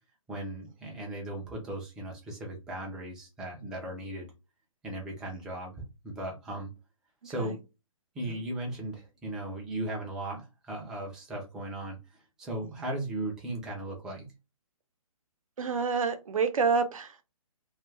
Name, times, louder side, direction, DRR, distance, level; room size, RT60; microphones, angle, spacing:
voice 1, 0.3-4.3 4.8-6.7 7.2-7.6 8.1-14.3, right 1 dB, 5° right, 0.3 m, -37 dB
voice 2, 15.6-17.2, right 5 dB, 75° right, 0.7 m, -28 dB
2.3 x 2.2 x 3.1 m
hypercardioid pair, 150°, 18 cm